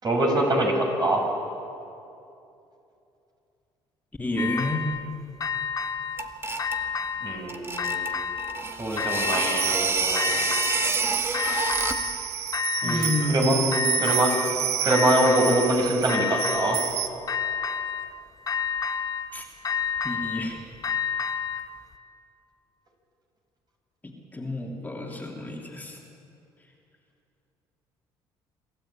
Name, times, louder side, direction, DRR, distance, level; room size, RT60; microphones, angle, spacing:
voice 1, 0.0-1.3 7.2-8.2 8.8-10.5 12.8-13.5 14.0-14.3 14.8-16.8, right 1 dB, 40° right, 1 dB, 6.4 m, -24 dB
voice 2, 4.2-4.9 12.8-14.1 19.3-19.4 20.0-20.6 24.0-26.0, left 2 dB, 15° left, -1 dB, 3.0 m, -30 dB
sound 1, 4.4-5.1 5.4-6.3 6.6-7.4 7.8-8.6 9.0-9.8 10.1-11.0 11.3-12.2 12.5-13.4 13.7-14.6 14.9-15.8 16.1-16.9 17.3-18.1 18.5-19.3 19.6-21.7, left 6 dB, 35° left, 1.2 m, -30 dB
sound 2, 6.2-6.8 7.5-12.1, right 2 dB, 25° right, 1.9 m, -29 dB
sound 3, 9.3-17.1, right 10 dB, 75° right, 1.3 m, -29 dB
26.5 x 13.0 x 8.9 m, 2.7 s
supercardioid pair, 75°, 10 cm